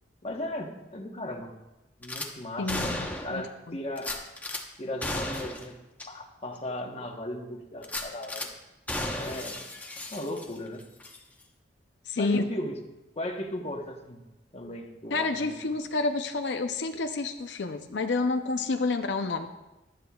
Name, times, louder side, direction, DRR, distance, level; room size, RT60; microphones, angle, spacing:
voice 1, 0.2-1.5 2.0-3.0 3.2-4.2 4.8-5.7 6.1-8.5 9.1-9.6 10.1-10.9 12.1-12.8 13.2-14.2 14.5-15.5, left 1 dB, 35° left, 3 dB, 1.1 m, -36 dB
Gunshot gunfire / Glass, 2.0-2.3 2.7-3.4 4.0-4.6 5.0-5.7 6.0-6.1 6.6-6.7 7.8-8.5 8.9-10.7 11.0-11.2, left 1 dB, 10° left, 1.0 m, -34 dB
voice 2, 2.6-3.8 12.1-12.4 15.1-19.5, left 3 dB, 80° left, 6 dB, 0.6 m, -29 dB
15.5 x 12.0 x 2.4 m, 1.0 s
head